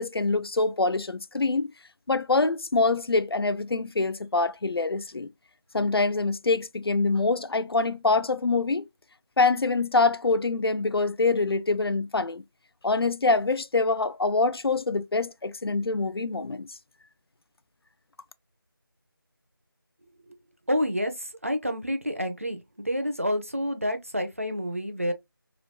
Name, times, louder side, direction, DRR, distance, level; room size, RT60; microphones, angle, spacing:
voice 1, 0.0-1.7 2.1-5.3 5.7-8.9 9.4-12.4 12.8-16.7, left 3 dB, 85° left, 0.4 m, -25 dB
voice 2, 20.7-25.1, equal, 35° right, 0.4 m, -29 dB
3.0 x 2.3 x 2.8 m
figure-of-eight pair, 170°, 12 cm